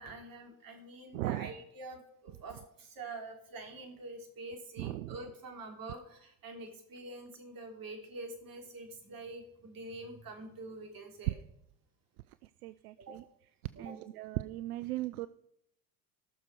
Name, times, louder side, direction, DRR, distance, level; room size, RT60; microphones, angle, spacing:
voice 1, 0.0-11.4 13.0-13.2 13.7-14.0, right 2 dB, 50° right, 4 dB, 3.3 m, -46 dB
voice 2, 1.1-1.5 4.8-5.2 11.3-11.4 12.4-13.2 13.8-15.3, right 17 dB, 80° right, 15 dB, 0.5 m, -37 dB
18.0 x 6.6 x 4.7 m, 0.74 s
hypercardioid pair, 60°, 44 cm